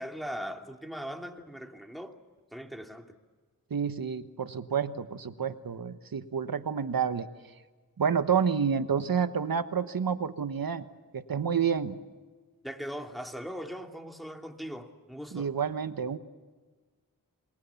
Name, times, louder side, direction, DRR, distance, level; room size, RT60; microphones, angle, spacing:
voice 1, 0.0-2.2 2.5-3.2 12.6-15.5, equal, ahead, 2.7 m, -40 dB
voice 2, 3.7-7.3 8.0-10.8 11.1-11.9 15.3-16.2, right 7 dB, 75° right, 1.2 m, -29 dB
28.0 x 20.5 x 7.1 m
cardioid pair, 40°, 35 cm